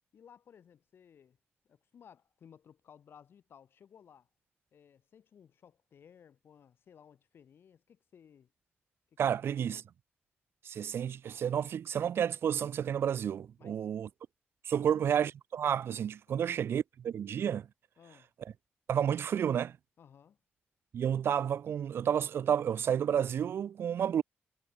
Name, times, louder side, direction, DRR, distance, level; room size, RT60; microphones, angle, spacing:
voice 1, 0.1-1.4 1.6-4.3 4.7-8.5 9.1-9.9 13.6-13.9 14.7-15.0 16.3-16.6 18.0-18.3 20.0-20.4, left 8 dB, 70° left, 5.0 m, -59 dB
voice 2, 9.2-9.8 10.6-14.1 14.6-17.7 18.9-19.7 20.9-24.2, right 8 dB, 80° right, 1.0 m, -31 dB
wide cardioid pair, 150°, 4 cm